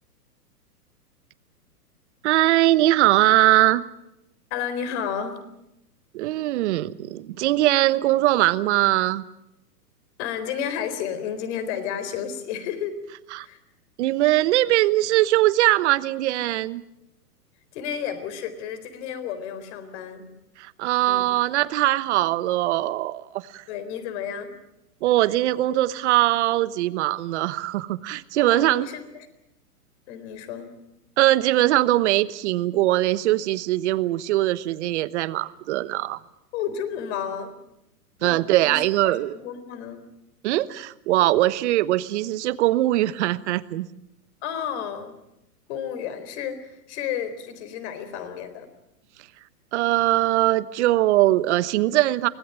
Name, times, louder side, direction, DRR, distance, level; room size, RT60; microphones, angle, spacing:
voice 1, 2.2-3.8 6.1-9.2 13.3-13.5 14.0-16.8 20.6-23.6 25.0-28.9 31.2-36.2 38.2-39.4 40.4-43.9 49.7-52.3, right 16 dB, 45° right, 16 dB, 1.2 m, -21 dB
voice 2, 4.5-5.4 10.2-13.0 13.4-13.6 17.7-20.3 21.1-21.3 23.7-24.5 28.4-29.3 30.1-30.8 36.5-37.6 38.2-40.1 44.4-45.2 45.7-48.7, left 8 dB, 45° left, 11 dB, 4.1 m, -32 dB
24.5 x 19.0 x 9.0 m, 0.85 s
hypercardioid pair, 130°, 47 cm